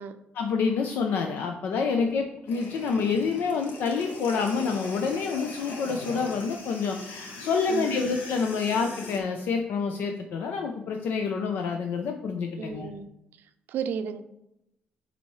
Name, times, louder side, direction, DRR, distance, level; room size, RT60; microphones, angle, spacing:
voice 1, 0.3-12.9, left 5 dB, 65° left, 4 dB, 0.6 m, -28 dB
sound 1, 2.5-9.2, left 2 dB, 80° left, 1.7 m, -40 dB
voice 2, 7.7-8.1 12.6-13.1 13.4-14.2, right 6 dB, 60° right, 10 dB, 0.5 m, -34 dB
9.8 x 4.1 x 3.2 m, 0.85 s
cardioid pair, 170°, 4 cm